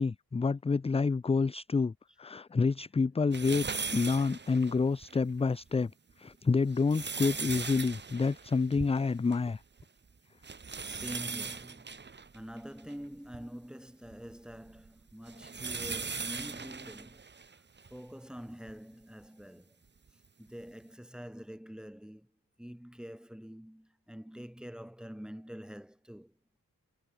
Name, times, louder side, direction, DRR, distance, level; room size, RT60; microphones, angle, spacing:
voice 1, 0.0-5.9 6.2-9.6, left 4 dB, 20° left, 0.3 m, -28 dB
sound 1, 3.3-5.2 5.7-5.8 6.5-9.5 9.8-9.9 10.4-13.4 14.1-18.0 18.7-18.8 20.1-20.2, right 5 dB, 30° right, 1.0 m, -39 dB
voice 2, 10.8-17.2 17.9-19.8 20.4-22.3 22.6-26.3, equal, ahead, 2.3 m, -46 dB
wide cardioid pair, 180°, 36 cm